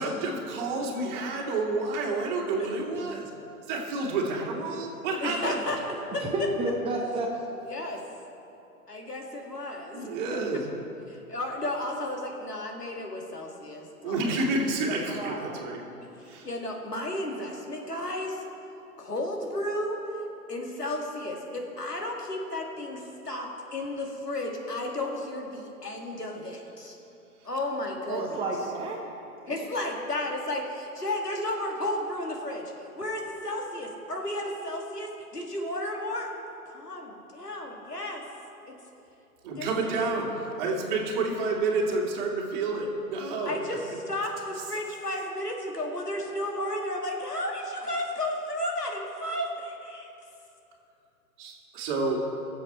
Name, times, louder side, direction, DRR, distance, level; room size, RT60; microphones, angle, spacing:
voice 1, 0.0-3.3 3.7-5.6 9.9-10.6 14.0-15.8 16.3-16.5 39.4-43.8 51.4-52.2, right 3 dB, 35° right, -2 dB, 2.4 m, -29 dB
voice 2, 5.2-6.3 7.7-8.0 8.9-10.1 11.1-14.2 16.2-18.4 19.0-20.0 20.5-27.0 27.4-28.4 29.5-36.3 36.7-38.2 38.7-38.8 39.6-39.9 43.4-50.1, left 1 dB, 90° left, 0 dB, 2.4 m, -33 dB
voice 3, 6.2-7.3 14.9-15.6 28.0-29.0 29.4-29.6, right 2 dB, 10° right, 0 dB, 0.8 m, -31 dB
22.0 x 7.5 x 4.4 m, 2.8 s
figure-of-eight pair, 120°, 46 cm